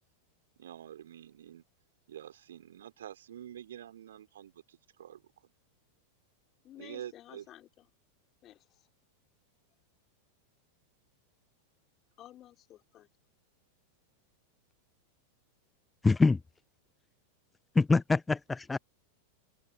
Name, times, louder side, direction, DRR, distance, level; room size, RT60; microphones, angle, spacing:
voice 1, 0.6-1.6 2.1-5.5 6.8-7.5, right 10 dB, 60° right, 4.2 m, -47 dB
voice 2, 6.6-7.8 8.4-8.9 12.2-13.1, left 13 dB, 30° left, 5.3 m, -53 dB
voice 3, 16.0-16.4 17.8-18.8, left 3 dB, 10° left, 0.4 m, -25 dB
open air
figure-of-eight pair, 90°, 0 cm